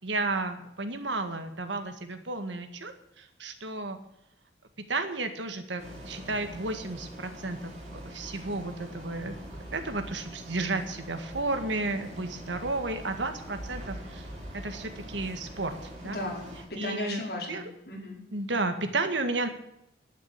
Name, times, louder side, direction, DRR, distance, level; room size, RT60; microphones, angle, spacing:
voice 1, 0.0-4.0 4.9-9.3 9.7-14.3 14.5-16.2 16.8-17.2 17.5-17.6 18.3-19.5, right 2 dB, 85° right, 7 dB, 1.9 m, -32 dB
sound 1, 5.8-16.6, equal, 40° right, 4.6 m, -43 dB
voice 2, 16.0-18.2, left 2 dB, 55° left, -2 dB, 5.2 m, -36 dB
11.0 x 10.0 x 8.6 m, 0.80 s
head